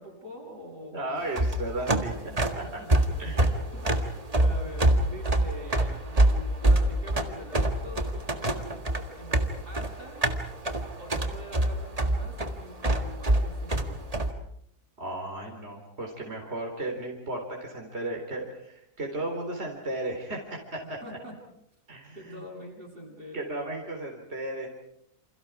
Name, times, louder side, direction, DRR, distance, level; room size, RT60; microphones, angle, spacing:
voice 1, 0.0-1.6 2.3-2.9 3.7-10.2 11.0-14.0 20.8-21.4 22.1-23.5, right 1 dB, 85° right, -1 dB, 8.7 m, -45 dB
voice 2, 0.9-2.1 2.4-2.6 3.2-3.6 15.0-21.2 21.9-22.4 23.3-24.7, right 1 dB, 40° right, 1 dB, 4.2 m, -35 dB
sound 1, 1.2-14.3, right 1 dB, 25° right, 1.8 m, -25 dB
29.0 x 28.0 x 4.8 m, 0.75 s
omnidirectional pair, 1.7 m